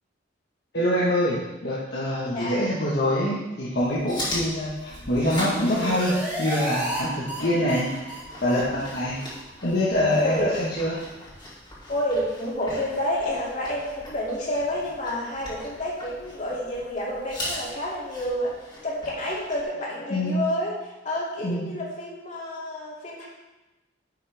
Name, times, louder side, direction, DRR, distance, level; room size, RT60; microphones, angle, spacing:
voice 1, 0.7-9.2 9.6-11.0 20.1-20.4 21.4-21.7, left 1 dB, 60° left, -7 dB, 1.5 m, -25 dB
Chewing mastication, 3.8-19.6, left 1 dB, 25° left, 2.7 m, -39 dB
sound 1, 5.0-7.0 7.3-7.4 7.7-7.8 8.1-8.2 8.5-8.6 8.9-9.0 9.3-9.4 9.7-9.8 10.1-10.2, right 1 dB, 10° right, 1.7 m, -33 dB
voice 2, 11.9-18.5 18.8-23.2, left 1 dB, 40° left, -5 dB, 2.7 m, -29 dB
10.5 x 6.6 x 3.6 m, 1.1 s
head